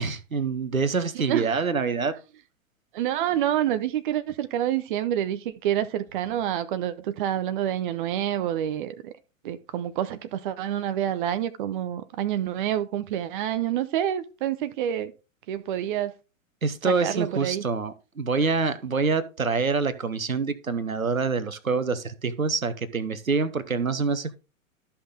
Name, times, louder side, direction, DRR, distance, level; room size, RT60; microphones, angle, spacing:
voice 1, 0.0-2.1 16.6-24.4, right 4 dB, 80° right, 1.1 m, -26 dB
voice 2, 1.3-1.6 2.9-9.1 9.4-15.1 15.5-16.1 17.0-17.6, right 11 dB, 40° right, 0.7 m, -27 dB
13.0 x 5.7 x 3.7 m
figure-of-eight pair, 105°, 41 cm